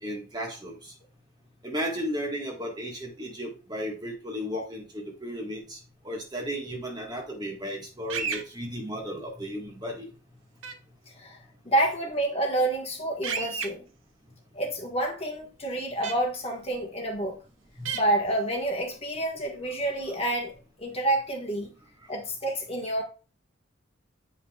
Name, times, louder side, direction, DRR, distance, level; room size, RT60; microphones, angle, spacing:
voice 1, 0.0-0.9 1.6-5.8 6.0-10.1 17.8-17.9, equal, 20° right, 1.6 m, -34 dB
sound 1, 8.1-8.4 10.6-10.7 13.2-13.7 16.0-16.1 17.9-18.0, right 6 dB, 70° right, 1.1 m, -30 dB
voice 2, 11.6-13.8 14.5-17.4 17.9-21.7 22.1-23.0, right 1 dB, 30° left, 1.5 m, -28 dB
9.1 x 5.4 x 2.4 m
head